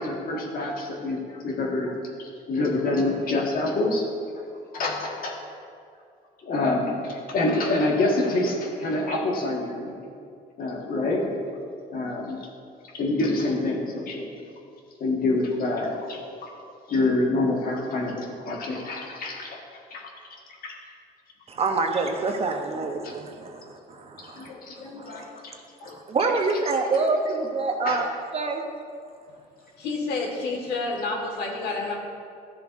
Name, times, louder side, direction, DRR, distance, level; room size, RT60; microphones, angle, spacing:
voice 1, 0.0-2.0 2.5-4.0 4.7-5.4 6.4-9.9 10.6-11.4 11.9-12.4 12.9-14.3 15.0-16.5 16.9-19.6 19.9-20.1 20.6-20.7 22.3-22.4 23.0-23.1 24.2-25.5 25.8-25.9 27.8-28.1, left 2 dB, 60° left, -1 dB, 1.6 m, -26 dB
voice 2, 21.5-24.5 25.0-25.2 25.8-28.1 28.3-28.6, right 3 dB, 35° right, 3 dB, 0.9 m, -26 dB
voice 3, 29.8-32.0, left 3 dB, 75° left, 0 dB, 1.7 m, -29 dB
13.0 x 7.1 x 2.6 m, 2.3 s
cardioid pair, 110°, 17 cm